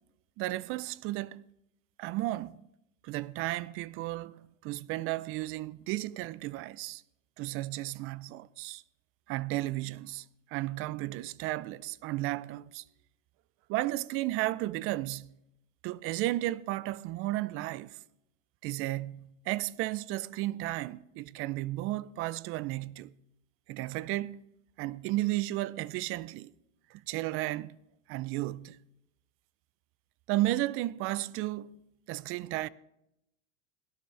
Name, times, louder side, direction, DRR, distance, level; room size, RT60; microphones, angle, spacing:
voice 1, 0.4-1.4 2.0-2.6 3.0-7.0 7.4-8.8 9.3-10.2 10.5-12.8 13.7-15.3 15.8-17.9 18.6-23.1 23.7-24.4 24.8-26.5 27.1-27.8 28.1-28.8 30.3-31.8 32.1-32.7, right 17 dB, 35° right, 0.4 m, -33 dB
17.5 x 12.5 x 3.2 m
supercardioid pair, 120°, 38 cm